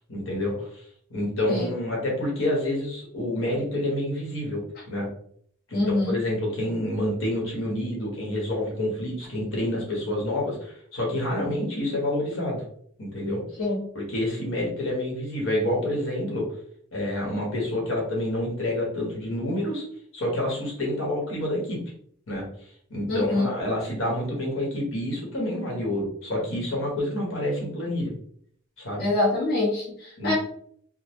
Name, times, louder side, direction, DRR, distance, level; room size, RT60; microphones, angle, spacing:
voice 1, 0.1-4.6 4.9-5.1 5.7-12.6 13.0-13.4 13.9-16.5 16.9-19.8 20.1-21.8 22.3-28.1 28.8-29.0 30.2-30.3, left 1 dB, 75° left, -2 dB, 1.2 m, -28 dB
voice 2, 5.7-6.2 13.6-13.8 23.1-23.5 29.0-30.3, left 2 dB, 50° left, -6 dB, 1.1 m, -25 dB
3.7 x 2.0 x 3.0 m, 0.63 s
head